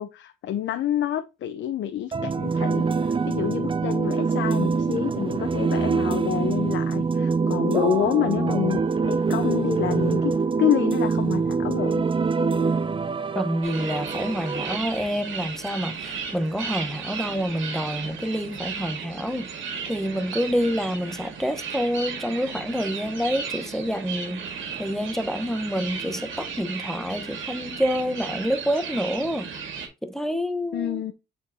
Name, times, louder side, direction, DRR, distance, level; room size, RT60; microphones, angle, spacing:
voice 1, 0.0-10.3 10.6-12.0 30.7-31.1, left 10 dB, 70° left, 0.7 m, -28 dB
sound 1, 2.1-14.8, right 4 dB, 25° right, 0.5 m, -24 dB
voice 2, 13.3-24.4 24.8-29.5 30.0-31.0, equal, ahead, 1.0 m, -27 dB
sound 2, 13.6-29.9, right 6 dB, 80° right, 2.1 m, -35 dB
8.3 x 4.3 x 2.7 m
cardioid pair, 90°, 20 cm